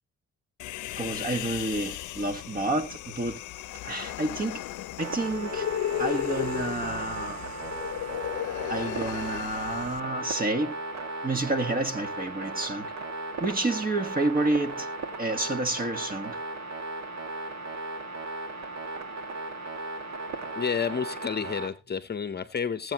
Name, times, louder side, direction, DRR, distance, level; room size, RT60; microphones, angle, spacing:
Human voice, 0.6-10.0, left 13 dB, 80° left, 0.7 m, -35 dB
voice 1, 1.0-3.4 3.8-4.6 5.0-5.7 6.0-7.5 8.7-10.8 11.2-12.9 13.4-14.9 15.2-16.4, right 2 dB, 30° right, 1.7 m, -29 dB
sound 1, 5.0-21.7, right 2 dB, 65° right, 2.0 m, -36 dB
voice 2, 20.6-22.9, left 6 dB, 35° left, 0.9 m, -30 dB
18.0 x 8.1 x 3.0 m
cardioid pair, 90°, 30 cm